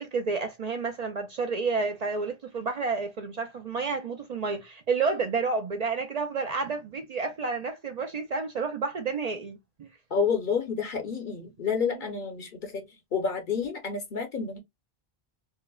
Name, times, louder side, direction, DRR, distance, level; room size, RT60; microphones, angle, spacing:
voice 1, 0.0-9.9 11.9-12.2, right 4 dB, 55° right, 0.4 m, -30 dB
voice 2, 10.1-12.8 13.1-14.6, left 6 dB, 55° left, 0.8 m, -29 dB
4.6 x 2.1 x 2.2 m
omnidirectional pair, 1.1 m